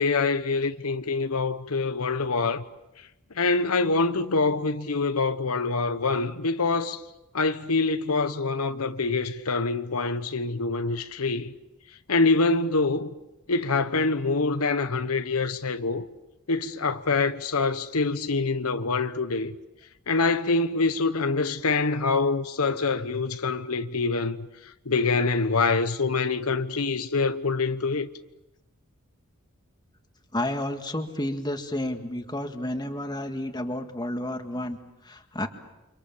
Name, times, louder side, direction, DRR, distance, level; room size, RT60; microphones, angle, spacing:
voice 1, 0.0-2.6 3.4-7.0 7.3-11.5 12.1-13.1 13.5-16.1 16.5-19.5 20.1-24.4 24.9-28.1, left 3 dB, 85° left, 1.1 m, -25 dB
voice 2, 30.3-35.5, left 1 dB, 20° left, 2.0 m, -31 dB
29.5 x 25.5 x 7.3 m
head